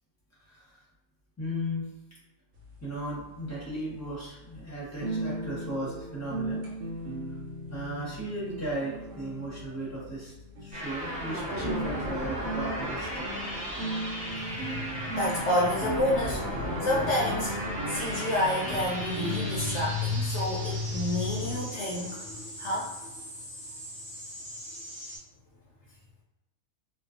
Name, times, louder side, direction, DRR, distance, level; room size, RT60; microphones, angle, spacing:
voice 1, 1.4-1.9 2.8-6.6 7.7-10.3 10.6-13.3, right 1 dB, 15° left, -8 dB, 0.7 m, -36 dB
sound 1, 2.6-19.8, right 1 dB, 75° right, 1.1 m, -38 dB
sound 2, 10.7-25.2, equal, 15° right, 0.8 m, -36 dB
voice 2, 15.1-17.6 17.9-23.2, left 1 dB, 65° left, -3 dB, 0.7 m, -29 dB
2.5 x 2.3 x 2.4 m, 1.0 s
omnidirectional pair, 1.6 m